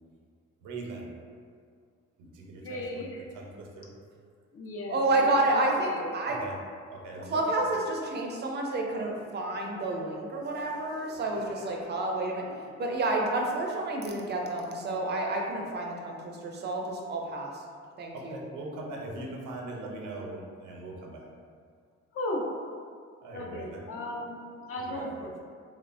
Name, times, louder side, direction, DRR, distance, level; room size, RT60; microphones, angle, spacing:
voice 1, 0.6-1.1 2.2-3.0 3.3-3.9 6.3-6.6 6.9-7.4 11.1-11.8 18.1-21.3 23.2-23.9 24.9-25.3, right 2 dB, 85° right, -1 dB, 0.6 m, -41 dB
voice 2, 2.6-3.2 4.5-6.1 10.9-11.0 12.7-12.8 22.1-22.5 23.3-25.2, left 1 dB, 50° left, -1 dB, 0.5 m, -36 dB
voice 3, 4.9-6.4 7.2-12.4 12.8-17.5 18.0-18.4, right 2 dB, 35° right, 0 dB, 0.4 m, -29 dB
3.0 x 2.0 x 2.4 m, 2.1 s
cardioid pair, 90°, 30 cm